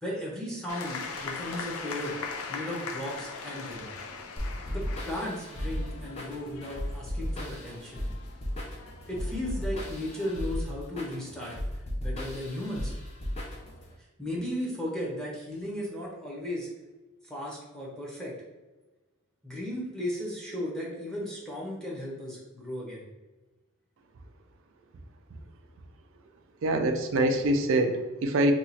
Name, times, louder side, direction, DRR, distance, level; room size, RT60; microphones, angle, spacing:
voice 1, 0.0-3.9 4.7-8.1 9.1-11.5 12.0-12.9 14.0-16.7 17.2-18.3 19.4-23.1, left 1 dB, 5° left, -5 dB, 0.8 m, -36 dB
sound 1, 0.7-10.5, left 4 dB, 75° left, 0.5 m, -41 dB
sound 2, 4.4-13.9, equal, 30° left, 0.6 m, -35 dB
voice 2, 26.6-28.5, right 1 dB, 60° right, 5 dB, 0.4 m, -25 dB
2.9 x 2.4 x 4.1 m, 1.2 s
head